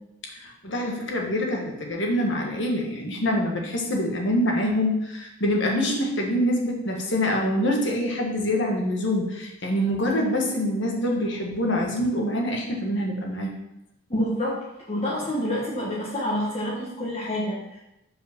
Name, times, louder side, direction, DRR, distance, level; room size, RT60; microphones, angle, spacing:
voice 1, 0.3-13.5, left 1 dB, 60° left, 0 dB, 1.4 m, -25 dB
voice 2, 14.1-17.8, equal, 30° left, -6 dB, 1.4 m, -28 dB
5.4 x 5.0 x 5.9 m, 0.87 s
head